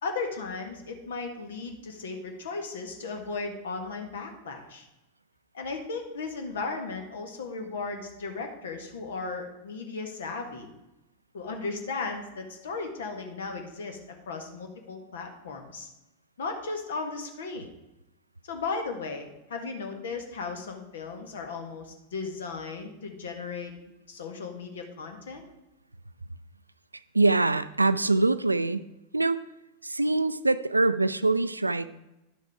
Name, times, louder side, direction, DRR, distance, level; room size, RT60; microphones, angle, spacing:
voice 1, 0.0-4.9 5.5-10.7 11.3-14.0 14.3-15.9 16.4-17.7 18.4-23.7 24.1-25.4, left 4 dB, 60° left, 5 dB, 1.6 m, -36 dB
voice 2, 27.1-28.8 29.1-29.4 29.8-31.9, right 2 dB, 85° right, 14 dB, 0.4 m, -24 dB
11.0 x 6.4 x 4.9 m, 0.95 s
figure-of-eight pair, 90°, 0 cm